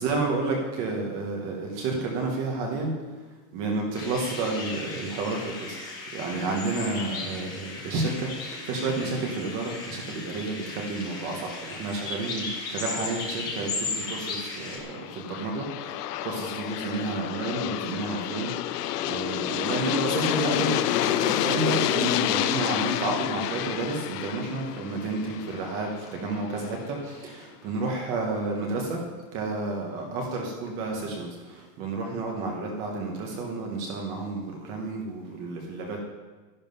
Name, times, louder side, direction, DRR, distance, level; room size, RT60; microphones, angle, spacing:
voice 1, 0.0-2.9 3.5-29.0 29.3-36.0, right 3 dB, 25° right, 0 dB, 1.2 m, -31 dB
sound 1, 3.9-14.8, left 4 dB, 10° left, 0.5 m, -36 dB
Aircraft, 13.9-26.7, left 13 dB, 70° left, 0.7 m, -29 dB
11.5 x 11.0 x 5.4 m, 1.3 s
supercardioid pair, 175°, 48 cm